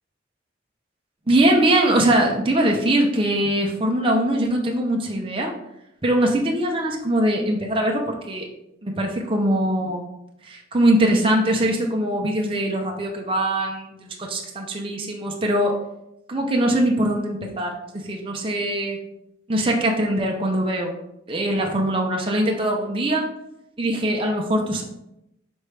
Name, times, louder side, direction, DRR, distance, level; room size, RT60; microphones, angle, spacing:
voice 1, 1.3-5.5 6.0-8.5 8.8-10.0 10.4-15.7 16.3-19.0 19.5-20.9 21.3-23.3 23.8-24.8, right 1 dB, 30° right, 0 dB, 0.7 m, -22 dB
6.5 x 4.3 x 3.3 m, 0.84 s
head